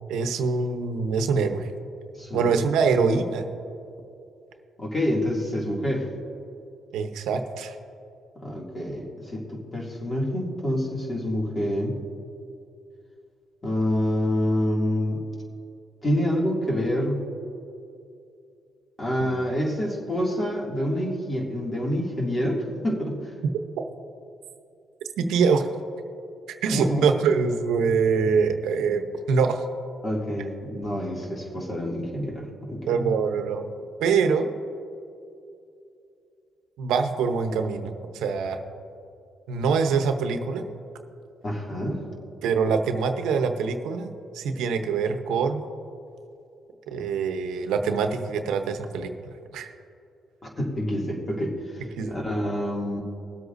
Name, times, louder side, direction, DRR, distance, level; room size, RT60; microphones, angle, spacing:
voice 1, 0.1-1.7 2.3-3.5 6.9-7.7 19.2-19.4 25.2-25.7 26.5-29.6 32.9-33.6 34.0-34.5 36.8-38.6 39.5-40.6 42.4-45.6 46.9-49.1 49.5-49.7 52.0-52.2, right 5 dB, 85° right, 6 dB, 0.8 m, -24 dB
voice 2, 2.2-2.6 4.8-6.1 8.4-12.0 13.6-15.2 16.0-17.2 19.0-23.2 26.7-27.1 30.0-32.8 41.4-42.0 50.4-53.0, equal, 30° left, -2 dB, 2.4 m, -27 dB
21.5 x 8.0 x 2.6 m, 2.6 s
cardioid pair, 90°, 0 cm